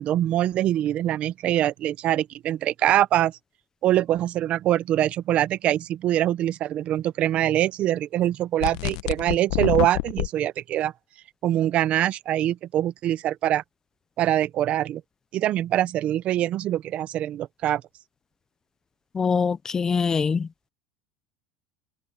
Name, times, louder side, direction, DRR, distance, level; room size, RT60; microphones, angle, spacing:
voice 1, 0.0-3.3 3.8-10.9 11.4-13.6 14.2-15.0 15.3-17.8, right 12 dB, 35° right, 0.6 m, -24 dB
sound 1, 8.6-10.3, left 20 dB, 65° left, 0.8 m, -26 dB
voice 2, 19.1-20.5, left 5 dB, 15° left, 0.5 m, -23 dB
cardioid pair, 160°, 4 cm